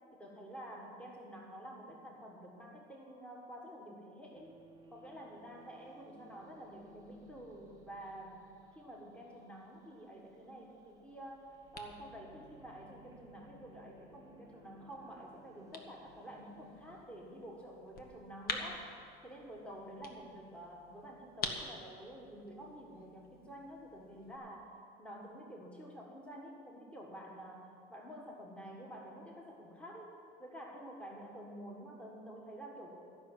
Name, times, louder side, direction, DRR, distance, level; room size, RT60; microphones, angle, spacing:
voice 1, 0.1-4.6 4.9-18.8 19.2-24.7 25.0-30.1 30.4-33.0, equal, 5° left, -1 dB, 1.6 m, -49 dB
sound 1, 4.3-17.1, right 4 dB, 20° right, 1.4 m, -63 dB
sound 2, 10.9-24.4, left 4 dB, 55° left, 1.4 m, -48 dB
14.5 x 6.0 x 9.1 m, 2.4 s
cardioid pair, 120°, 19 cm